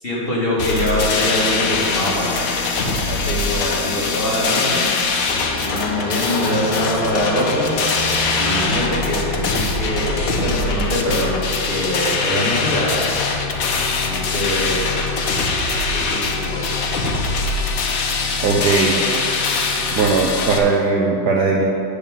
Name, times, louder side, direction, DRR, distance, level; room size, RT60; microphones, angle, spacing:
voice 1, 0.0-2.5 3.0-4.9 5.5-7.8 8.4-13.2 14.0-14.8 15.9-16.9, left 1 dB, 30° left, -7 dB, 2.1 m, -23 dB
sound 1, 0.6-20.6, left 4 dB, 55° left, 1.1 m, -22 dB
sound 2, 3.5-9.9, left 1 dB, 70° left, 2.1 m, -36 dB
voice 2, 18.4-19.0 19.9-21.6, right 4 dB, 65° right, -1 dB, 1.1 m, -18 dB
8.6 x 5.0 x 7.2 m, 2.6 s
omnidirectional pair, 2.2 m